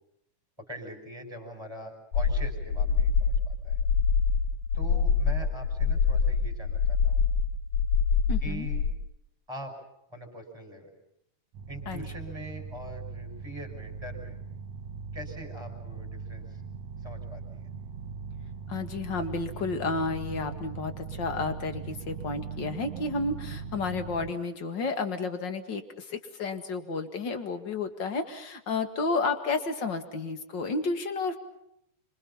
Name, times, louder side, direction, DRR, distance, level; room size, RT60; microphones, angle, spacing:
voice 1, 0.6-3.8 4.7-7.2 8.4-8.8 9.5-9.7 10.1-10.9 11.7-14.4 15.1-16.5 17.0-17.7, equal, 5° right, 5 dB, 5.5 m, -43 dB
sound 1, 2.1-8.9, left 5 dB, 70° left, 2.6 m, -25 dB
voice 2, 8.3-8.7 11.9-12.1 18.7-31.4, left 3 dB, 40° left, 8 dB, 2.2 m, -31 dB
sound 2, 11.5-24.3, right 5 dB, 65° right, 2.4 m, -40 dB
27.5 x 26.0 x 5.6 m, 0.76 s
omnidirectional pair, 3.6 m